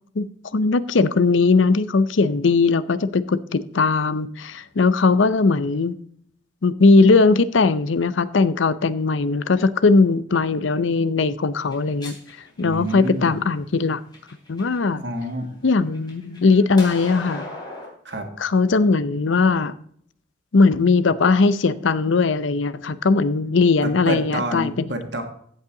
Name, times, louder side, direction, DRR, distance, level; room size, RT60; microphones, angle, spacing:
voice 1, 0.5-5.9 6.6-12.2 12.6-14.0 14.5-15.0 15.6-17.4 18.4-19.7 20.5-24.7, left 4 dB, 75° left, 0.6 m, -19 dB
sound 1, 11.6-13.3 13.9-14.8 15.2-17.9, left 1 dB, 20° left, 3.3 m, -38 dB
voice 2, 12.6-13.4 15.0-15.5 18.1-18.3 23.8-25.2, right 1 dB, 60° right, 1.8 m, -28 dB
15.0 x 5.5 x 3.8 m
head